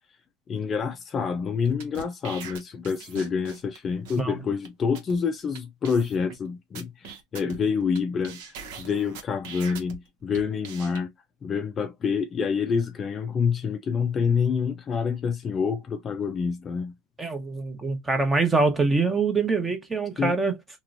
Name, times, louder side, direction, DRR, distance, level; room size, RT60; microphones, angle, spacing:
voice 1, 0.5-11.1 11.4-16.9 20.2-20.3, left 6 dB, 25° left, 0.5 m, -27 dB
sound 1, 1.7-3.8 4.1-4.2 4.7-4.8 5.0-5.2 5.6-5.7 5.8-6.4 6.8-8.0 8.2-10.0 10.3-11.0, right 6 dB, 75° right, 1.1 m, -41 dB
voice 2, 17.2-20.6, right 3 dB, 15° right, 0.9 m, -24 dB
3.0 x 3.0 x 2.6 m
supercardioid pair, 140°, 0 cm